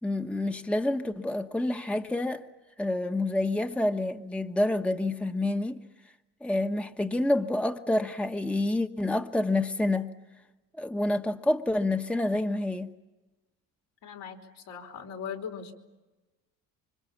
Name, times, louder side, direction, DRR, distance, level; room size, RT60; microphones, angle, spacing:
voice 1, 0.0-2.4 2.8-5.8 6.4-10.1 10.8-12.9, left 1 dB, 5° left, 1.2 m, -28 dB
voice 2, 14.0-15.8, left 7 dB, 75° left, 4.8 m, -39 dB
27.5 x 25.0 x 7.3 m
supercardioid pair, 75°, 41 cm